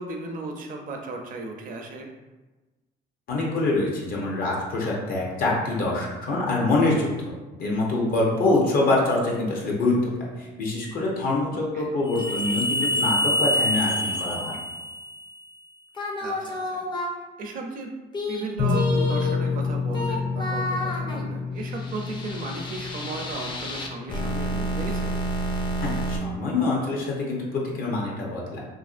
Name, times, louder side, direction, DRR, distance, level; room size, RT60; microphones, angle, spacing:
voice 1, 0.0-2.1 11.5-11.9 16.2-16.8 17.4-17.9 18.3-25.1, right 2 dB, 55° right, 2 dB, 0.5 m, -35 dB
voice 2, 3.3-7.1 7.6-14.5 25.8-28.6, left 2 dB, 60° left, -2 dB, 0.7 m, -25 dB
sound 1, 12.1-15.4 16.0-17.1 18.1-26.2, left 2 dB, 25° left, 0.4 m, -27 dB
2.8 x 2.5 x 2.4 m, 1.2 s
cardioid pair, 110°, 17 cm